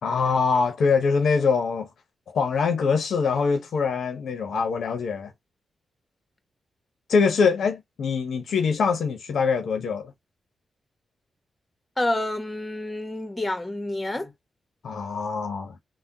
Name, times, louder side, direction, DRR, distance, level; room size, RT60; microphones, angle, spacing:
voice 1, 0.0-1.9 2.3-5.3 7.1-10.1 14.8-15.7, left 5 dB, 75° left, 0.8 m, -23 dB
voice 2, 12.0-14.3, left 1 dB, 25° left, 1.2 m, -28 dB
3.5 x 2.2 x 2.7 m
supercardioid pair, 45°, 0 cm